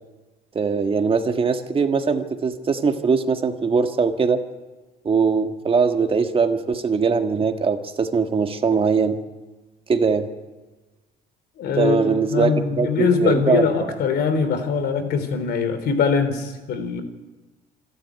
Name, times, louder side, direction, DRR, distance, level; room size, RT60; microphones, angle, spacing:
voice 1, 0.6-4.4 5.0-9.1 9.9-10.3 11.8-13.9, right 5 dB, 30° right, 6 dB, 1.7 m, -21 dB
voice 2, 11.6-17.0, left 5 dB, 70° left, 10 dB, 3.3 m, -22 dB
26.5 x 11.5 x 9.4 m, 1.2 s
cardioid pair, 110°, 17 cm